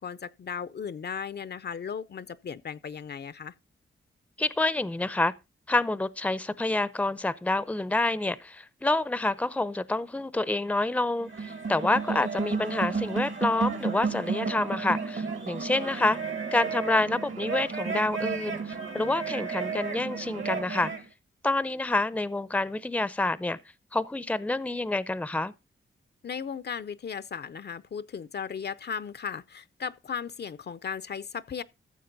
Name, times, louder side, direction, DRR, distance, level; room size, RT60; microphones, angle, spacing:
voice 1, 0.0-3.5 26.2-31.6, left 7 dB, 55° left, 0.5 m, -36 dB
voice 2, 4.4-5.3 5.7-16.2 16.5-20.9 21.4-23.6 23.9-25.5, left 2 dB, 5° left, 0.6 m, -28 dB
sound 1, 11.2-21.0, right 5 dB, 65° right, 2.2 m, -32 dB
14.0 x 7.3 x 3.9 m
cardioid pair, 85°, 21 cm